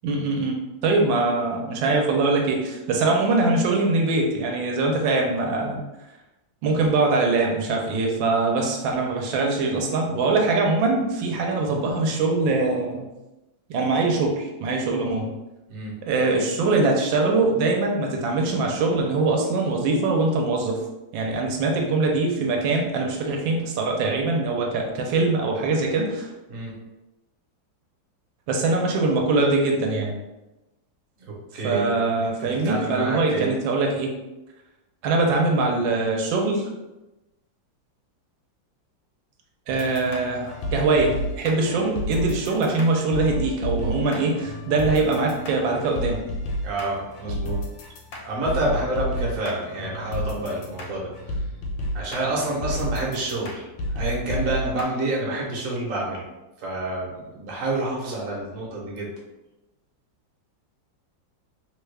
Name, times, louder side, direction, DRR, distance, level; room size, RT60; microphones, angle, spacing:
voice 1, 0.0-5.8 6.6-13.1 13.7-15.3 16.0-20.8 21.1-26.3 28.5-30.2 31.6-34.1 35.0-36.7 39.7-46.2, right 3 dB, 80° right, 0 dB, 1.3 m, -23 dB
voice 2, 31.3-31.9 32.2-33.5 46.6-47.6 48.2-51.4 51.9-56.2 56.6-59.1, right 2 dB, 55° right, -3 dB, 1.0 m, -28 dB
sound 1, 39.7-54.8, equal, 80° left, 1.3 m, -32 dB
3.2 x 2.3 x 3.2 m, 1.0 s
omnidirectional pair, 2.1 m